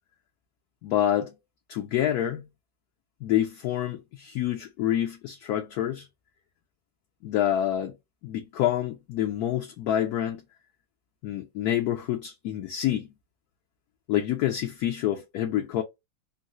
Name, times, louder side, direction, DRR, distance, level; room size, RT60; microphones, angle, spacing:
voice 1, 0.8-1.3 1.7-2.5 3.2-6.1 7.2-8.0 8.2-10.4 11.2-13.1 14.1-15.8, left 11 dB, 75° left, 0.9 m, -27 dB
3.9 x 2.0 x 2.4 m
omnidirectional pair, 2.0 m